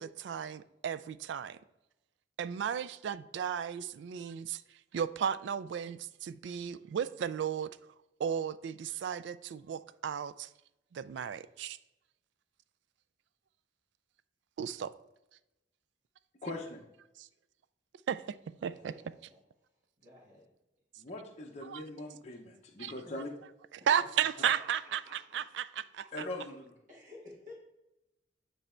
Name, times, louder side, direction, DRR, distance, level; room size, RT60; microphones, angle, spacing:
voice 1, 0.0-1.6 2.4-4.6 4.9-7.7 8.2-10.5 10.9-11.8 14.6-14.9 17.2-17.3 18.1-18.9 21.7-21.8 22.8-22.9 23.9-26.1, right 8 dB, 65° right, 15 dB, 0.3 m, -34 dB
voice 2, 16.4-16.8 21.0-23.3 26.1-26.6, left 2 dB, 35° left, 0 dB, 0.7 m, -41 dB
voice 3, 18.7-19.4 20.0-20.5 23.0-23.1 24.2-25.6 26.9-27.5, left 1 dB, 45° right, -5 dB, 1.7 m, -53 dB
9.0 x 3.3 x 4.3 m, 0.92 s
head